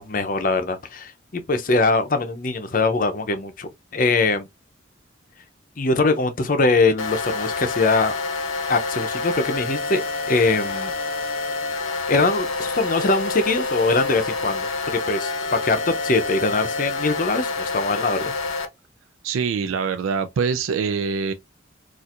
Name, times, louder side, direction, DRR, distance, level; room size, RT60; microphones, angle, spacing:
voice 1, 0.0-4.5 5.8-8.1 8.7-10.0 10.3-10.9 12.1-18.3, left 3 dB, 40° left, 0.5 m, -22 dB
sound 1, 7.0-18.7, left 3 dB, 90° left, 0.7 m, -27 dB
voice 2, 19.2-21.3, right 5 dB, 85° right, 0.3 m, -24 dB
4.2 x 2.5 x 2.4 m
head